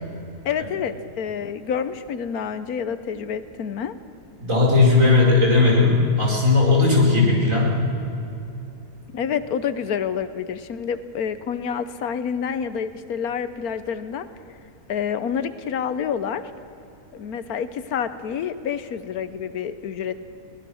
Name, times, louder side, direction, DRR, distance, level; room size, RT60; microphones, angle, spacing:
voice 1, 0.4-3.9 9.1-14.3 14.9-16.5 17.1-20.1, left 7 dB, 75° left, 12 dB, 1.4 m, -28 dB
voice 2, 4.4-7.8, left 3 dB, 60° right, -3 dB, 5.5 m, -17 dB
22.5 x 18.5 x 6.4 m, 2.8 s
omnidirectional pair, 1.6 m